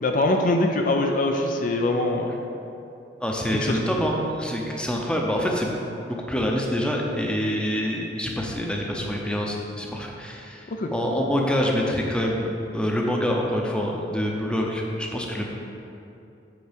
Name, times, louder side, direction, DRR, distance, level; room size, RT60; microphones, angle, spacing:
voice 1, 0.0-2.4 3.4-3.8 10.7-10.9, left 2 dB, 50° left, 3 dB, 0.5 m, -23 dB
voice 2, 3.2-5.7 6.1-15.5, equal, 5° left, -1 dB, 0.7 m, -26 dB
8.0 x 4.6 x 5.1 m, 2.8 s
head